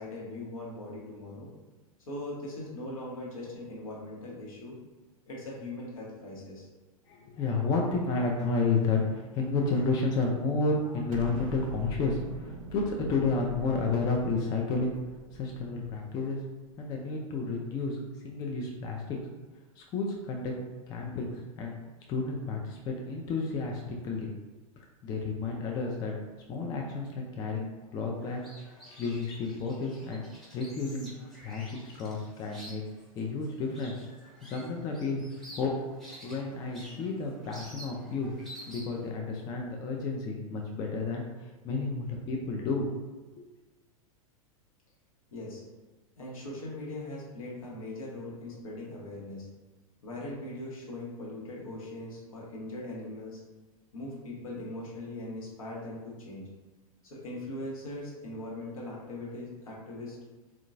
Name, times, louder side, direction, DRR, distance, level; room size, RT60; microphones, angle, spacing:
voice 1, 0.0-1.5 2.1-4.8 5.3-6.7 45.3-45.6 46.2-49.5 50.0-53.4 53.9-56.5 57.0-60.2, left 1 dB, 70° left, -4 dB, 1.0 m, -40 dB
voice 2, 7.1-14.9 15.3-16.4 16.8-19.2 19.8-20.5 20.9-21.7 22.1-24.3 25.0-26.1 26.5-28.4 29.0-30.2 30.5-31.1 31.4-32.8 33.2-33.9 34.4-35.2 35.5-35.7 36.2-38.3 38.7-41.2 41.6-42.9 43.4-43.5, left 3 dB, 20° left, 0 dB, 0.3 m, -31 dB
Explosion, 11.1-16.3, right 2 dB, 60° right, 0.5 m, -43 dB
sound 1, 28.2-39.1, equal, 5° left, 0.9 m, -50 dB
3.6 x 2.3 x 2.5 m, 1.2 s
figure-of-eight pair, 90°, 19 cm